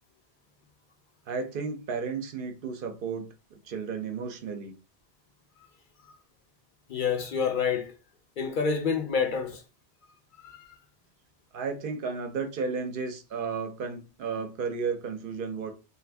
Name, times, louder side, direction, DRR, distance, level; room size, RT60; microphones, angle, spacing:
voice 1, 1.3-4.7 11.5-15.7, right 5 dB, 60° right, 0.7 m, -33 dB
voice 2, 6.9-7.9 8.4-9.6 10.4-10.7, left 6 dB, 55° left, 0.6 m, -28 dB
2.6 x 2.5 x 3.3 m
omnidirectional pair, 1.1 m